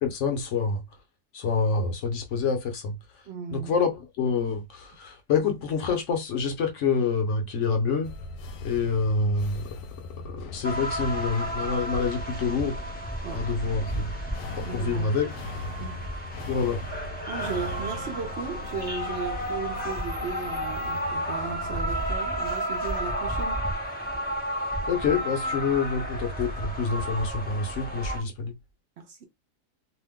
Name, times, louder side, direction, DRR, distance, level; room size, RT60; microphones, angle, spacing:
voice 1, 0.0-0.8 1.3-3.0 3.5-8.1 8.6-9.7 10.2-13.0 13.3-14.1 14.7-15.3 16.5-16.8 24.9-28.5, left 5 dB, 60° left, 0.9 m, -27 dB
voice 2, 3.3-3.7 13.2-13.4 14.7-15.1 15.8-16.1 17.3-23.6 29.0-29.2, right 6 dB, 65° right, 0.6 m, -36 dB
sound 1, 8.0-22.1, left 3 dB, 80° left, 1.1 m, -40 dB
sound 2, 10.6-28.2, equal, 15° left, 0.4 m, -32 dB
2.7 x 2.1 x 3.5 m
omnidirectional pair, 1.7 m